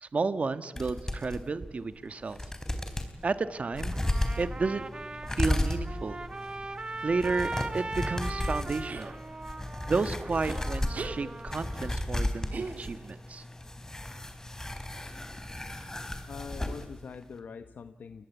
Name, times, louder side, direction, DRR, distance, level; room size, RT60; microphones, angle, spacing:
voice 1, 0.0-2.4 3.2-4.0 4.4-4.8 5.3-6.2 7.0-9.1 9.9-13.4, right 4 dB, 55° right, 12 dB, 1.4 m, -32 dB
sound 1, 0.8-1.4 1.9-2.0 2.3-3.1 3.7-16.9 17.1-17.2, left 1 dB, 20° left, 3.9 m, -34 dB
Trumpet, 3.9-11.9, right 3 dB, 35° right, 1.2 m, -40 dB
sound 2, 8.9-9.1 10.5-10.6 10.9-11.2 12.5-13.2, right 4 dB, 75° right, 3.1 m, -39 dB
voice 2, 16.3-18.3, left 6 dB, 85° left, 9 dB, 1.0 m, -43 dB
29.5 x 22.0 x 8.3 m, 1.1 s
wide cardioid pair, 75°, 3 cm